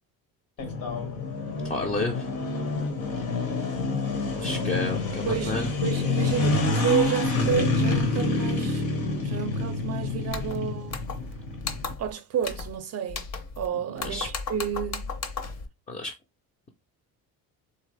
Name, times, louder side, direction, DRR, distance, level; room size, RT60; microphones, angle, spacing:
sound 1, 0.6-11.9, left 3 dB, 75° left, 1.6 m, -27 dB
voice 1, 1.6-2.3 4.4-5.7 13.9-14.3 15.9-16.1, left 2 dB, 20° left, 0.4 m, -30 dB
voice 2, 4.5-4.8 5.3-8.9 9.2-11.0 12.0-13.3 13.6-15.1, right 8 dB, 45° right, 0.5 m, -30 dB
sound 2, 10.3-10.6 10.9-11.3 11.6-12.1 12.4-12.8 13.1-13.7 14.0-15.6, left 4 dB, 45° left, 0.8 m, -35 dB
3.7 x 3.6 x 3.2 m
cardioid pair, 170°, 36 cm